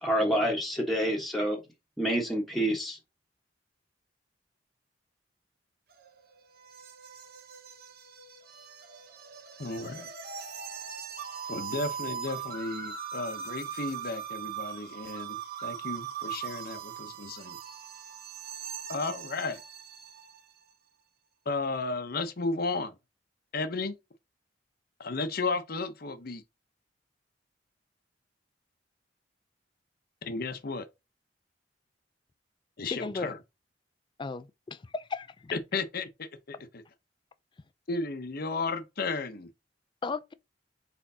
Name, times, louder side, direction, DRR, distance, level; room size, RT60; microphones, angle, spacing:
voice 1, 0.0-1.6 2.0-3.0, equal, ahead, 1.2 m, -27 dB
sound 1, 5.9-20.5, right 8 dB, 55° right, 0.9 m, -40 dB
voice 2, 9.6-10.1 11.5-17.6 18.9-19.6 21.5-22.9 23.5-23.9 25.0-26.4 30.2-30.9 32.8-33.4 35.5-36.8 37.9-39.5, left 3 dB, 55° left, 0.8 m, -34 dB
voice 3, 32.9-33.4 34.2-35.5 40.0-40.3, left 4 dB, 25° left, 0.3 m, -35 dB
4.4 x 4.3 x 2.7 m
head